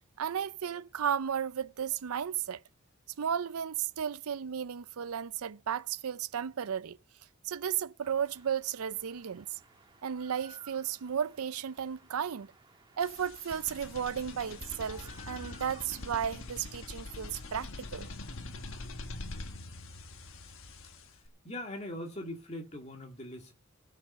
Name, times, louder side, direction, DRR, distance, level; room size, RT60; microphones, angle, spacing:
voice 1, 0.2-2.6 3.2-7.0 7.4-9.5 10.0-12.5 13.0-18.1, right 8 dB, 85° right, 0.5 m, -34 dB
sound 1, 8.0-17.2, right 2 dB, 20° right, 1.4 m, -58 dB
sound 2, 13.0-21.3, left 2 dB, 70° left, 1.3 m, -44 dB
voice 2, 21.4-23.5, left 1 dB, 30° left, 2.0 m, -41 dB
16.5 x 5.7 x 6.8 m
head